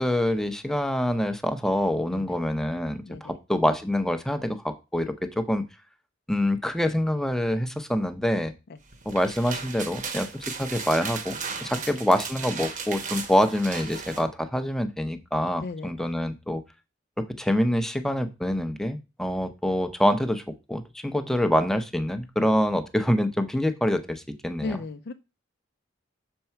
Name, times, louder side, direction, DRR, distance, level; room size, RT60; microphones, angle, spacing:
voice 1, 0.0-5.6 6.3-8.5 9.1-16.6 17.2-20.4 20.7-24.8, equal, 5° left, 9 dB, 0.7 m, -26 dB
sound 1, 8.9-14.2, right 5 dB, 45° right, 1.0 m, -36 dB
voice 2, 15.6-16.1 24.6-25.1, left 3 dB, 55° left, 7 dB, 0.5 m, -36 dB
6.7 x 4.5 x 5.7 m, 0.28 s
head